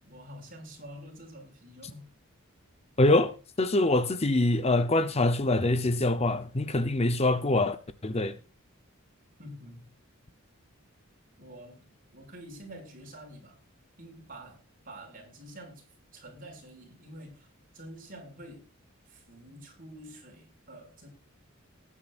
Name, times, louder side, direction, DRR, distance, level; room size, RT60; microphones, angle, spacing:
voice 1, 0.0-2.1 6.5-6.9 9.4-9.9 11.4-11.8 12.1-13.6 14.0-14.6 14.8-15.8 16.1-17.5 17.7-18.6 19.0-21.1, right 1 dB, 45° right, 6.4 m, -47 dB
voice 2, 3.0-3.3 3.6-7.8 8.0-8.3, left 2 dB, 30° left, 0.8 m, -24 dB
19.0 x 9.9 x 2.5 m
head